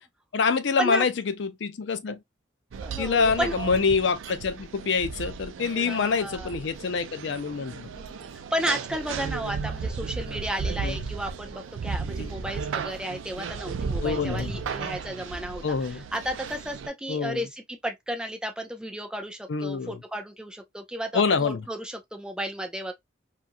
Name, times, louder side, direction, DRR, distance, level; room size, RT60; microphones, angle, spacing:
voice 1, 0.3-2.2 3.0-7.9 10.8-11.0 12.2-12.3 14.0-14.5 15.6-16.0 17.1-17.4 19.5-20.0 21.1-21.6, left 5 dB, 70° left, 0.5 m, -26 dB
sound 1, 2.7-16.9, right 5 dB, 85° right, 0.4 m, -35 dB
voice 2, 2.8-3.5 5.8-6.5 7.9-22.9, equal, 5° right, 0.3 m, -33 dB
2.9 x 2.4 x 2.5 m
head